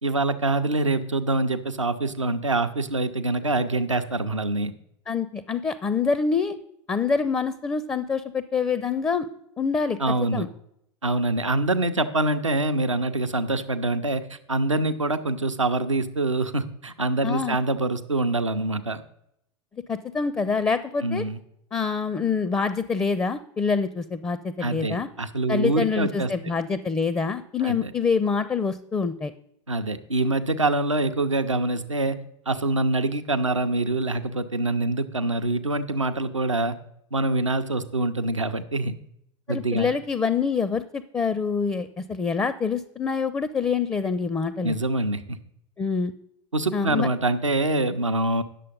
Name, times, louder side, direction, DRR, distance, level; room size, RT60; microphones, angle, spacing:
voice 1, 0.0-4.7 10.0-10.5 11.0-19.0 21.0-21.4 24.6-26.3 27.6-27.9 29.7-32.2 32.5-36.8 37.1-38.9 39.5-39.9 44.6-45.4 46.5-48.4, right 2 dB, 90° right, 9 dB, 0.5 m, -25 dB
voice 2, 5.1-6.6 6.9-9.3 9.6-10.0 10.3-10.5 17.2-17.6 19.9-21.2 21.7-25.1 25.5-29.3 39.5-44.8 45.8-46.1 46.7-47.1, left 5 dB, 15° left, 13 dB, 0.4 m, -26 dB
10.0 x 6.7 x 5.2 m, 0.75 s
figure-of-eight pair, 80°, 15 cm